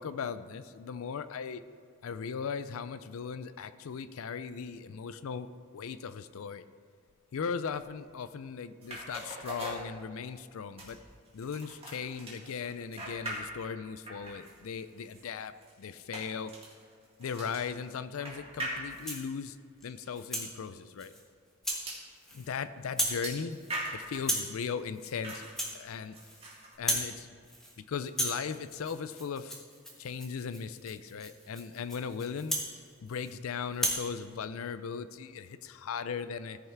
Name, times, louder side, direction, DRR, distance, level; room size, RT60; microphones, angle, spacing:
voice 1, 0.0-1.6 2.0-5.5 5.7-6.6 7.3-11.0 11.3-16.5 17.2-19.6 19.8-21.1 22.3-23.6 23.9-25.5 25.7-26.1 26.8-27.3 27.8-29.6 30.0-32.6 33.0-36.6, left 6 dB, 75° left, 12 dB, 0.4 m, -38 dB
sound 1, 8.8-10.4 10.8-13.8 14.1-19.3 20.0-20.1 20.5-20.6 21.9-22.1 23.2-24.3 25.2-25.7 26.1-26.7, right 1 dB, 25° right, 2.0 m, -42 dB
Rattle (instrument), 18.9-19.3 19.8-20.5 21.0-21.2 21.6-21.9 22.2-22.6 22.8-23.2 23.5-23.8 24.2-24.6 24.9-25.2 25.4-26.4 26.7-27.1 27.4-27.8 28.0-33.4 33.7-34.1, equal, ahead, 1.3 m, -36 dB
14.0 x 5.6 x 4.5 m, 2.2 s
head